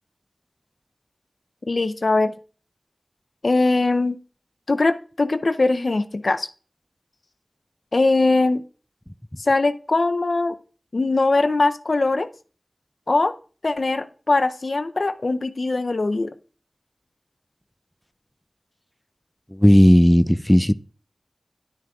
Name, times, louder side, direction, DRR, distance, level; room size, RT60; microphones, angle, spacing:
voice 1, 1.7-2.3 3.4-4.2 4.7-6.5 7.9-8.6 9.4-10.6 10.9-12.3 13.1-13.4 13.6-16.3, left 2 dB, 70° left, 0.5 m, -21 dB
voice 2, 19.5-20.7, equal, 10° left, 0.4 m, -14 dB
10.5 x 9.4 x 2.3 m
wide cardioid pair, 40°, 0 cm